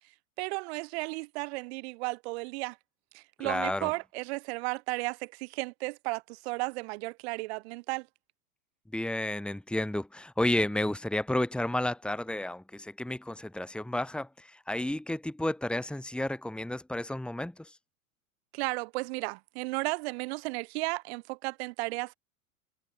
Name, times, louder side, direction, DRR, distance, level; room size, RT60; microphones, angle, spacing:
voice 1, 0.4-2.8 3.1-8.1 18.5-22.1, right 25 dB, 50° right, 5.5 m, -34 dB
voice 2, 3.4-3.9 8.9-17.8, left 1 dB, ahead, 3.7 m, -31 dB
figure-of-eight pair, 95°, 41 cm